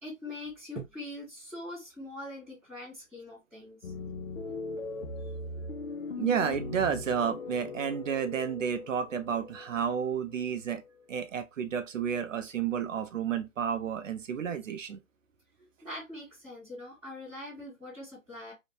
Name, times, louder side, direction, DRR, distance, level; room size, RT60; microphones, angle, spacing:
voice 1, 0.0-3.9 15.8-18.5, left 1 dB, 5° right, 1.0 m, -42 dB
sound 1, 3.8-11.3, left 3 dB, 70° left, 0.6 m, -40 dB
voice 2, 6.1-10.8 11.1-15.0, right 7 dB, 75° right, 0.5 m, -31 dB
2.6 x 2.2 x 2.2 m
hypercardioid pair, 165°, 39 cm